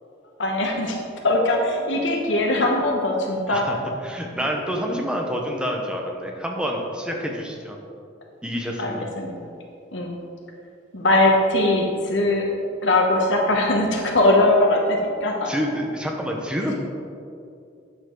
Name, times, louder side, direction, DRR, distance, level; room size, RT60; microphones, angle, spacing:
voice 1, 0.4-1.0 1.2-3.7 8.8-9.3 9.9-10.1 10.9-12.5 12.8-15.5 16.7-16.8, left 2 dB, 80° left, 0 dB, 1.0 m, -20 dB
voice 2, 4.0-7.8 8.4-9.1 15.4-16.7, equal, 5° right, 0 dB, 0.9 m, -28 dB
9.1 x 6.9 x 3.9 m, 2.5 s
head